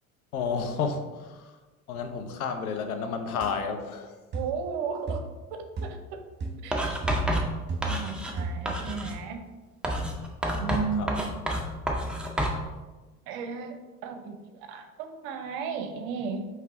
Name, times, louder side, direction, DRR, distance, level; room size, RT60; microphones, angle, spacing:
voice 1, 0.3-1.0 1.3-1.4 1.9-4.1 11.0-11.1, left 5 dB, 75° left, 6 dB, 0.7 m, -30 dB
sound 1, 3.4-3.6 4.3-4.6 5.1-5.4 5.8-6.1 6.4-6.7 7.0-8.1 8.4-8.8, right 3 dB, 25° right, 1.3 m, -34 dB
voice 2, 4.3-5.2 5.5-6.2 6.6-6.9 7.9-9.4 10.6-11.3 11.9-12.1 13.3-16.5, right 5 dB, 50° right, 6 dB, 0.7 m, -35 dB
Writing, 6.7-8.4 8.6-9.2 9.8-12.6, equal, ahead, 0.4 m, -29 dB
4.7 x 3.2 x 3.5 m, 1.2 s
figure-of-eight pair, 65°, 44 cm